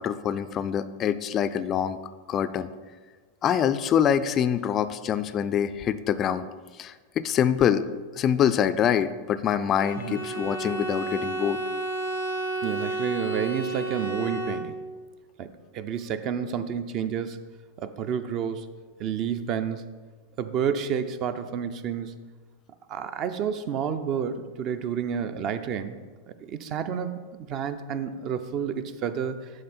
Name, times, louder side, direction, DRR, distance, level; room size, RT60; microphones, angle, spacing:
voice 1, 0.0-2.0 2.3-2.7 3.4-6.5 6.8-7.8 8.1-11.6, left 9 dB, 30° left, 12 dB, 0.3 m, -25 dB
Bowed string instrument, 9.7-15.0, right 2 dB, 85° right, 1.4 m, -31 dB
voice 2, 12.6-14.7 15.4-17.4 17.8-18.7 19.0-19.8 20.4-22.1 22.9-26.0 26.3-29.5, right 7 dB, 35° right, 11 dB, 0.5 m, -30 dB
11.0 x 3.9 x 4.2 m, 1.4 s
figure-of-eight pair, 90°, 0 cm